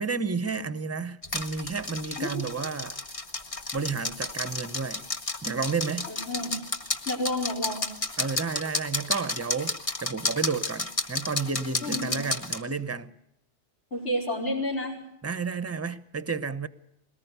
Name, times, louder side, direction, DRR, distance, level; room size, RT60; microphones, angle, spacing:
voice 1, 0.0-3.0 3.7-5.0 5.4-6.1 8.2-13.1 15.2-16.7, right 5 dB, 15° right, 0.7 m, -31 dB
sound 1, 1.2-12.6, left 2 dB, 30° left, 1.3 m, -32 dB
voice 2, 6.1-6.6 7.1-7.9 11.8-12.2 13.9-15.0, left 1 dB, 80° left, 5.4 m, -30 dB
21.5 x 19.0 x 6.8 m
omnidirectional pair, 1.2 m